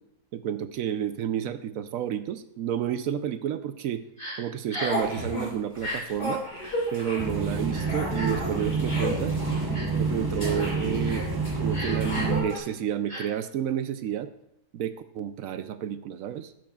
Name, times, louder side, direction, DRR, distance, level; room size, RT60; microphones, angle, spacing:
voice 1, 0.3-4.0 4.4-6.4 6.9-9.4 9.9-11.2 11.6-14.3 14.7-16.5, right 9 dB, 70° right, 11 dB, 0.8 m, -30 dB
Crying sobbing, 4.2-4.4 4.7-5.0 5.7-6.0 6.6-6.8 7.7-8.4 9.0-9.1 9.7-10.0 10.4-10.6 11.0-11.2 11.7-12.4 13.1-13.2, left 1 dB, 35° left, 4.7 m, -34 dB
sound 1, 4.8-5.5 5.7-12.6, equal, 70° left, 4.7 m, -35 dB
sound 2, 7.2-12.4, right 4 dB, 15° right, 0.9 m, -28 dB
14.0 x 10.5 x 2.3 m, 0.78 s
omnidirectional pair, 1.8 m